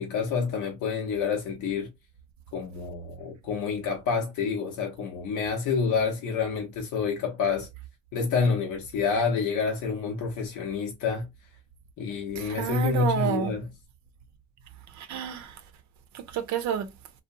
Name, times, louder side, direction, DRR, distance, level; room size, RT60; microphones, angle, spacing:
voice 1, 0.0-1.9 2.5-7.7 8.1-11.3 12.0-13.7, left 5 dB, 85° left, 0.7 m, -28 dB
voice 2, 12.4-13.5 15.0-15.6 16.1-16.9, right 8 dB, 70° right, 0.5 m, -29 dB
2.8 x 2.0 x 2.5 m
cardioid pair, 90°, 30 cm